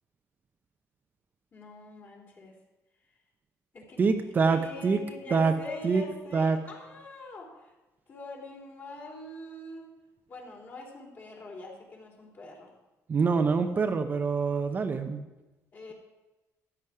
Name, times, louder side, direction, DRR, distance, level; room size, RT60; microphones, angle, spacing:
voice 1, 1.5-2.5 3.7-4.0 4.5-7.7 8.1-9.9 10.3-12.7 13.3-13.8 15.7-15.9, left 1 dB, 40° left, -1 dB, 3.4 m, -43 dB
voice 2, 4.0-5.0 5.3-5.5 5.8-6.0 6.3-6.6 13.1-15.3, right 5 dB, 30° right, 6 dB, 0.7 m, -25 dB
13.5 x 9.4 x 4.8 m, 1.1 s
cardioid pair, 140°, 6 cm